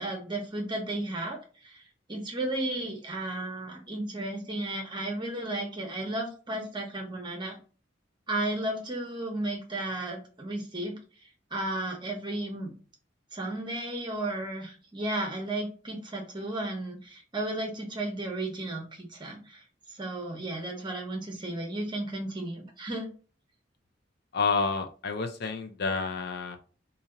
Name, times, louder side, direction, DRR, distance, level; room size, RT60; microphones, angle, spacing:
voice 1, 0.0-1.8 2.1-7.6 8.3-11.0 11.5-12.7 13.3-19.6 19.9-23.1, right 1 dB, 25° right, 1 dB, 1.0 m, -34 dB
voice 2, 24.3-26.6, left 4 dB, 60° left, 7 dB, 0.5 m, -29 dB
2.8 x 2.8 x 3.7 m, 0.38 s
head